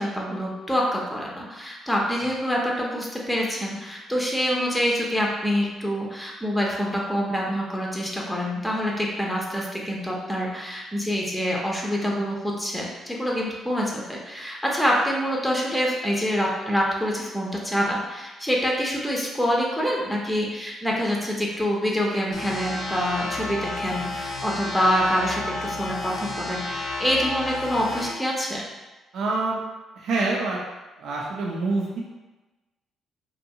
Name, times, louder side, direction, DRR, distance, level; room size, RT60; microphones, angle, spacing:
voice 1, 0.0-28.6, equal, 5° left, -2 dB, 0.6 m, -26 dB
sound 1, 22.3-28.1, left 2 dB, 75° left, 0.7 m, -31 dB
voice 2, 29.1-29.6 30.0-30.6 31.0-32.0, right 3 dB, 70° right, -2 dB, 0.4 m, -26 dB
2.7 x 2.3 x 2.7 m, 1.1 s
cardioid pair, 90°, 0 cm